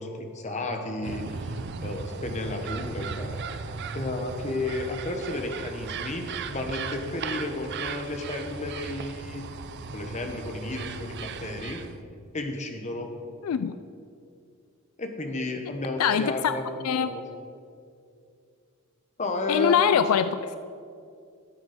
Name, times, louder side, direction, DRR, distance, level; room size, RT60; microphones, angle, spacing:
voice 1, 0.0-3.4 3.9-9.4 9.9-11.8 12.3-13.1 15.0-17.2 19.2-19.8, left 2 dB, 35° left, 4 dB, 1.1 m, -33 dB
sound 1, 1.0-12.0, right 5 dB, 50° right, 0.5 m, -37 dB
voice 2, 13.4-13.8 16.0-16.6 16.8-17.1 19.5-20.4, left 8 dB, 75° left, 12 dB, 0.3 m, -23 dB
13.0 x 7.2 x 5.1 m, 2.4 s
head